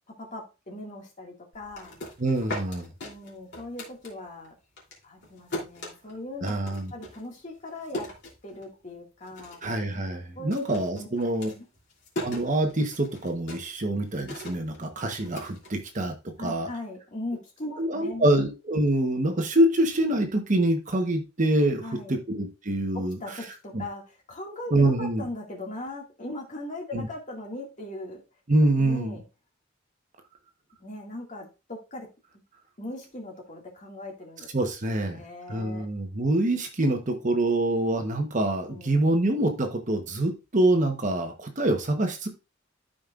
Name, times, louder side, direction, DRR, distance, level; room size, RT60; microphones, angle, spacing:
voice 1, 0.1-2.0 3.0-4.5 5.0-8.1 8.4-9.6 10.4-10.6 11.0-11.1 11.5-11.7 16.4-18.2 21.8-22.2 22.9-28.2 28.8-29.2 30.8-32.1 32.8-34.5 35.1-35.9 38.7-39.2, left 2 dB, 40° left, 0 dB, 2.0 m, -39 dB
sound 1, 1.5-4.5 4.8-8.9 9.2-9.8 10.1-16.3, left 1 dB, 55° left, 3.2 m, -39 dB
voice 2, 2.2-2.9 6.4-6.9 9.6-11.5 12.2-16.7 17.8-23.2 23.7-23.8 24.7-25.2 26.9-27.1 28.5-29.2 34.5-35.2 35.5-42.3, right 1 dB, 40° right, 5 dB, 1.1 m, -25 dB
13.0 x 5.2 x 2.5 m, 0.28 s
head